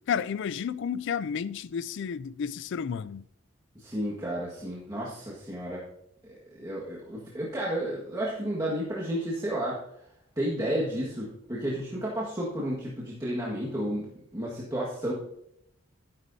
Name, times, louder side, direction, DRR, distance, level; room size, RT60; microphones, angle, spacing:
voice 1, 0.1-3.3, left 7 dB, 60° left, 0.4 m, -31 dB
voice 2, 3.7-5.8 6.2-9.8 10.3-15.1, right 1 dB, 20° right, 1.7 m, -32 dB
12.5 x 10.5 x 2.7 m
head